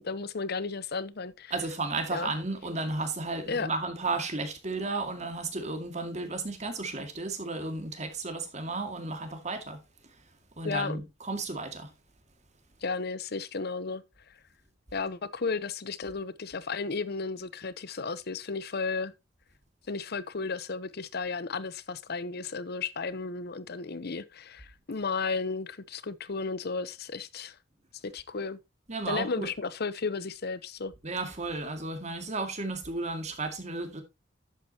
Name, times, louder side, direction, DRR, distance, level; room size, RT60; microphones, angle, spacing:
voice 1, 0.0-1.5 2.1-2.3 3.5-3.7 10.6-11.0 12.8-14.0 14.9-19.1 19.9-27.6 28.0-28.6 29.1-30.9, left 4 dB, 55° left, 0.8 m, -34 dB
voice 2, 1.5-9.8 10.6-11.9 28.9-29.5 31.0-34.0, right 3 dB, 35° right, 2.2 m, -33 dB
11.5 x 8.4 x 2.9 m
head